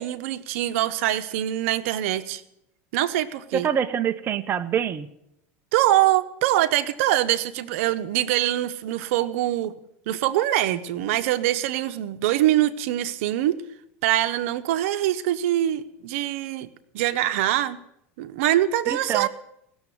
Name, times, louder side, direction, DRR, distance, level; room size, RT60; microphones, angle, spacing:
voice 1, 0.0-2.4 2.9-3.7 5.7-9.7 10.1-13.6 14.0-16.7 16.9-17.8 18.2-19.3, right 13 dB, 75° right, 0.9 m, -23 dB
voice 2, 3.5-5.1 18.9-19.3, right 8 dB, 30° right, 0.7 m, -25 dB
17.5 x 7.1 x 9.2 m
supercardioid pair, 115°, 7 cm